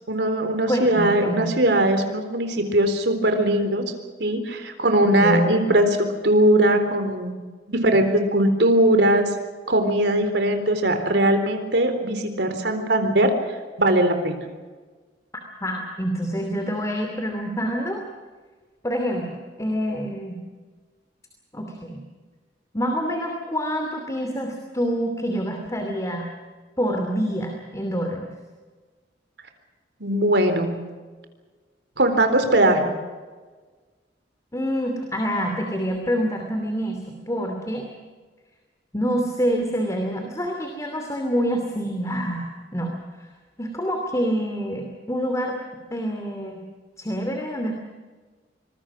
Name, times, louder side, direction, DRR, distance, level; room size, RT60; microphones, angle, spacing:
voice 1, 0.1-3.8 4.2-7.3 7.7-9.3 9.7-13.3 13.8-14.5 30.0-30.7 32.0-33.0, right 1 dB, 70° right, 6 dB, 3.9 m, -20 dB
voice 2, 0.7-1.6 5.2-5.6 15.6-18.0 18.8-20.4 21.5-22.0 22.7-26.3 26.8-28.3 34.5-37.9 38.9-42.9 43.6-45.6 45.9-46.6 47.0-47.7, equal, 20° left, 3 dB, 2.8 m, -26 dB
26.0 x 21.5 x 6.2 m, 1.4 s
head